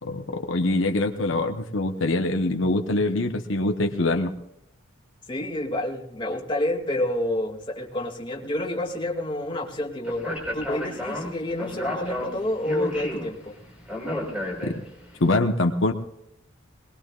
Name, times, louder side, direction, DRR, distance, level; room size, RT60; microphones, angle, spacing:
voice 1, 0.0-4.3 14.6-14.7 15.2-15.9, left 2 dB, 75° left, 3 dB, 1.1 m, -24 dB
voice 2, 5.3-13.6, left 1 dB, 25° left, -1 dB, 2.5 m, -29 dB
Speech, 10.0-15.1, left 1 dB, 5° right, 4.7 m, -32 dB
21.5 x 21.0 x 2.5 m, 0.84 s
head